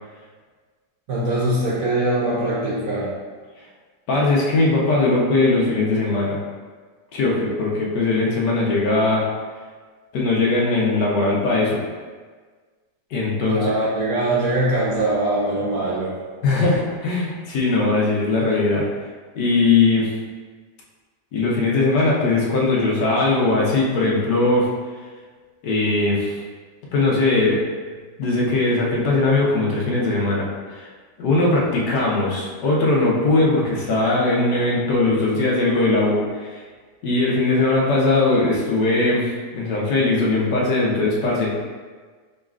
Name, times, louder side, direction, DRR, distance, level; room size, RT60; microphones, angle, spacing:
voice 1, 1.1-3.2 13.5-16.2, right 1 dB, 65° right, -6 dB, 1.0 m, -22 dB
voice 2, 4.1-6.4 7.1-9.2 10.1-11.8 13.1-13.7 16.4-18.9 19.3-20.1 21.3-24.7 25.6-26.4 26.9-27.6 28.2-30.9 31.2-36.6 37.0-41.5, left 2 dB, 75° left, -4 dB, 1.5 m, -20 dB
5.1 x 3.1 x 2.4 m, 1.5 s
omnidirectional pair, 1.8 m